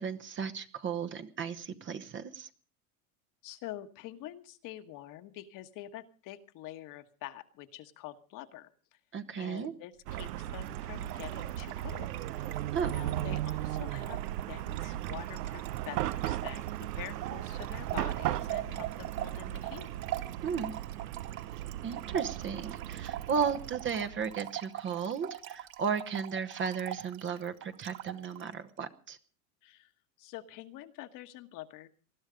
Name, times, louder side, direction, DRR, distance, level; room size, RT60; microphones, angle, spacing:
voice 1, 0.0-2.5 9.1-9.7 12.7-12.9 20.4-20.7 21.8-29.2, right 6 dB, 25° right, 9 dB, 1.0 m, -34 dB
voice 2, 3.4-9.0 9.4-12.1 12.3-12.6 12.9-19.9 29.6-29.9 30.2-31.9, left 14 dB, 45° left, 8 dB, 1.4 m, -46 dB
Trickle dribble / Fill (with liquid), 10.1-28.5, right 13 dB, 50° right, 2.3 m, -43 dB
Chatter / Car passing by / Traffic noise roadway noise, 10.1-24.3, right 13 dB, 85° right, 0.8 m, -37 dB
20.5 x 12.5 x 5.1 m, 0.40 s
supercardioid pair, 130°, 46 cm